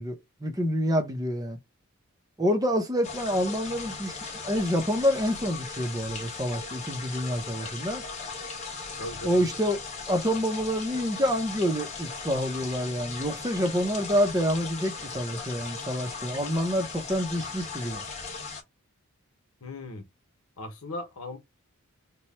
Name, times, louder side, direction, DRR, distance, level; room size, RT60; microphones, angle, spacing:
voice 1, 0.0-1.6 2.4-4.2 4.4-8.0 9.2-18.0, equal, 15° right, 0.7 m, -27 dB
sound 1, 3.0-18.6, left 4 dB, 30° left, 0.9 m, -38 dB
voice 2, 9.0-9.4 19.6-20.1 20.6-21.4, left 2 dB, 75° left, 1.0 m, -37 dB
3.0 x 2.3 x 4.1 m
head